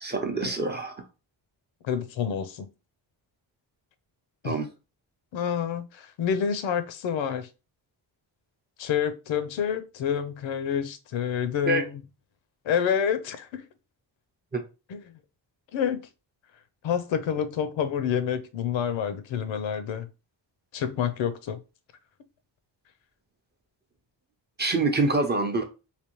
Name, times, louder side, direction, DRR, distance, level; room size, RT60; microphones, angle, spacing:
voice 1, 0.0-1.0 4.4-4.7 11.7-11.8 14.5-14.6 24.6-25.6, right 2 dB, 25° right, 0.6 m, -26 dB
voice 2, 1.8-2.7 4.4-4.6 5.3-7.5 8.8-12.0 12.7-13.6 14.9-15.0 15.7-16.0 16.8-20.1 20.7-21.6, left 8 dB, 90° left, 0.7 m, -28 dB
3.3 x 2.7 x 3.0 m
wide cardioid pair, 145°, 45 cm